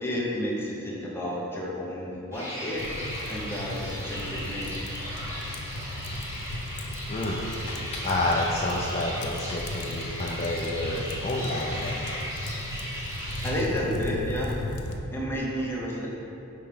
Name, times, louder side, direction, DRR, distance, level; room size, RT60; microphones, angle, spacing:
voice 1, 0.0-2.9 3.3-4.7 13.4-14.6 15.1-16.1, equal, 10° left, -4 dB, 0.9 m, -31 dB
sound 1, 2.3-13.5, equal, 15° right, 1.0 m, -37 dB
sound 2, 2.8-15.0, left 1 dB, 90° left, 0.6 m, -36 dB
voice 2, 7.1-7.4 8.0-12.1, left 2 dB, 30° left, -3 dB, 0.5 m, -29 dB
5.7 x 4.3 x 5.0 m, 3.0 s
head